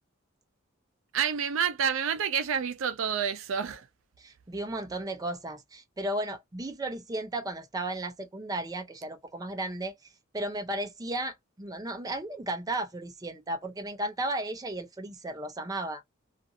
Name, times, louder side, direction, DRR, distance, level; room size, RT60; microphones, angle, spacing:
voice 1, 1.1-3.9, right 7 dB, 70° right, 0.4 m, -28 dB
voice 2, 4.2-9.9 10.3-16.0, right 1 dB, 20° right, 0.5 m, -34 dB
2.5 x 2.4 x 2.6 m
head